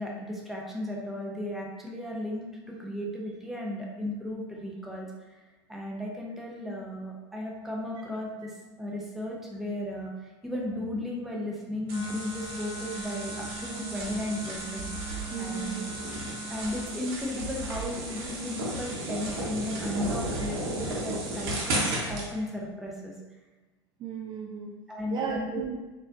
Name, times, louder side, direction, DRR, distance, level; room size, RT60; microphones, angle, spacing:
voice 1, 0.0-5.4 5.7-15.8 16.5-23.1 24.9-25.6, left 1 dB, ahead, -3 dB, 0.8 m, -35 dB
Wind instrument woodwind instrument, 11.9-17.0, equal, 50° left, 0.7 m, -41 dB
High Speed Wall Crash OS, 11.9-22.3, right 1 dB, 60° right, 0.9 m, -34 dB
voice 2, 15.3-15.9 24.0-24.7 25.1-25.9, right 6 dB, 35° right, 0 dB, 0.4 m, -35 dB
4.0 x 2.6 x 2.6 m, 1.2 s
hypercardioid pair, 80°, 14 cm